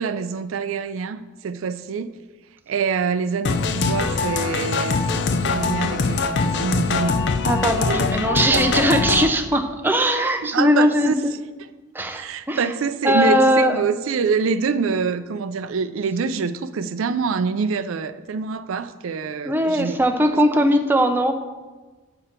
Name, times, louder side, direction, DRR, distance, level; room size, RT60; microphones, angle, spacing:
voice 1, 0.0-2.1 2.7-7.3 7.8-8.6 10.4-11.2 12.1-20.0, right 5 dB, 75° right, 12 dB, 0.4 m, -25 dB
sound 1, 3.4-9.3, left 4 dB, 55° left, 0.5 m, -22 dB
voice 2, 7.4-11.3 11.9-12.7 13.0-13.8 19.4-21.3, equal, 10° right, 5 dB, 0.5 m, -19 dB
8.6 x 6.8 x 4.3 m, 1.3 s
head